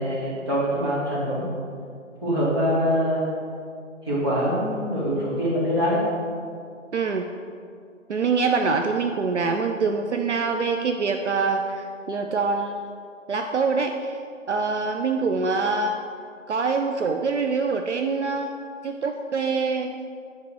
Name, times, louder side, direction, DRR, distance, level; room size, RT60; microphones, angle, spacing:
voice 1, 0.0-1.7 2.2-3.3 4.0-6.0, equal, 20° right, -8 dB, 1.8 m, -24 dB
voice 2, 6.9-7.3 8.1-12.9 13.3-14.2 14.5-16.0 16.5-18.6 18.8-19.9, right 4 dB, 60° right, 4 dB, 0.6 m, -24 dB
9.6 x 3.7 x 6.3 m, 2.3 s
figure-of-eight pair, 165°, 39 cm